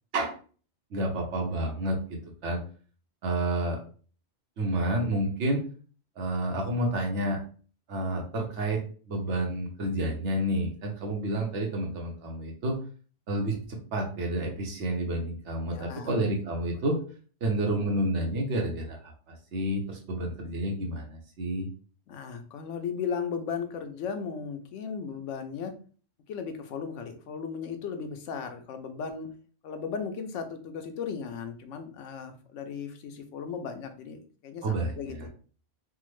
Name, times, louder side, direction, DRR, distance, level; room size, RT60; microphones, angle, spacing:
voice 1, 0.9-2.0 2.4-2.6 3.2-3.8 4.6-5.6 6.2-7.4 7.9-8.8 9.1-12.8 13.3-17.0 17.4-21.7 34.6-35.3, right 1 dB, 75° right, 0 dB, 1.0 m, -29 dB
voice 2, 15.7-16.1 22.1-25.7 26.3-29.3 29.6-35.3, left 6 dB, 85° left, 7 dB, 0.9 m, -36 dB
3.5 x 2.0 x 3.0 m, 0.41 s
omnidirectional pair, 1.2 m